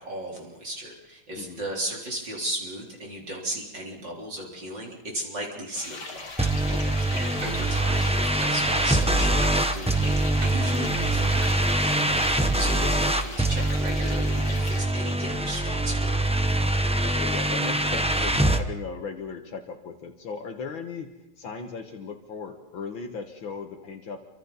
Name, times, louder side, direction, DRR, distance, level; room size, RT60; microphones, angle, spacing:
voice 1, 0.0-6.3 7.1-16.4, right 1 dB, 60° right, -2 dB, 4.5 m, -36 dB
sound 1, 5.7-14.8, left 3 dB, 55° left, 3.6 m, -39 dB
Clock, 6.2-12.1, right 3 dB, 85° right, 3.6 m, -45 dB
sound 2, 6.4-18.6, right 1 dB, 5° right, 0.5 m, -24 dB
voice 2, 17.0-21.1 21.4-24.2, left 5 dB, 70° left, 4 dB, 2.3 m, -37 dB
29.0 x 25.5 x 4.1 m, 0.93 s
omnidirectional pair, 2.3 m